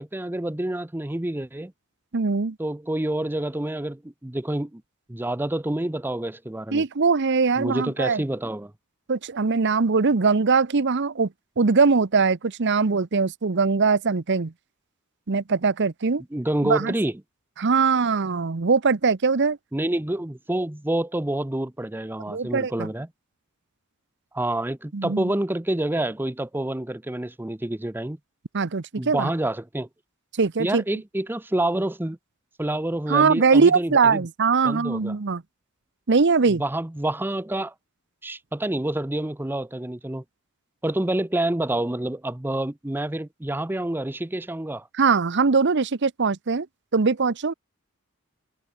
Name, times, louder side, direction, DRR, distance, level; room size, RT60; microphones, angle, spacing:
voice 1, 0.0-1.7 2.6-4.8 5.1-6.8 7.6-8.7 16.3-17.2 19.7-23.1 24.3-28.2 29.0-29.9 30.6-32.2 32.6-34.3 34.6-35.2 36.5-37.7 38.2-40.2 40.8-44.9, right 1 dB, 10° right, 0.6 m, -28 dB
voice 2, 2.1-2.6 6.7-8.2 9.1-11.3 11.6-14.5 15.3-16.2 16.6-16.9 17.6-19.6 22.3-22.9 24.9-25.3 28.5-29.3 30.4-30.8 33.1-35.4 36.1-36.6 45.0-46.7 46.9-47.5, right 4 dB, 55° right, 0.8 m, -21 dB
head